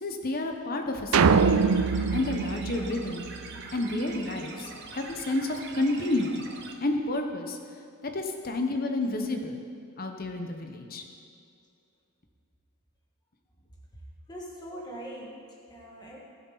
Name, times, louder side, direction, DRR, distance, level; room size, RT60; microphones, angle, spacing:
voice 1, 0.0-1.6 2.1-3.2 3.7-6.5 6.8-7.6 8.0-9.6 10.0-11.0, left 2 dB, 45° left, 4 dB, 1.0 m, -30 dB
sound 1, 1.1-6.7, right 4 dB, 55° right, 1.2 m, -43 dB
sound 2, 1.1-3.6, right 5 dB, 85° right, 0.5 m, -23 dB
voice 2, 14.3-16.2, equal, 20° left, -3 dB, 1.9 m, -42 dB
19.5 x 7.8 x 4.1 m, 2.5 s
head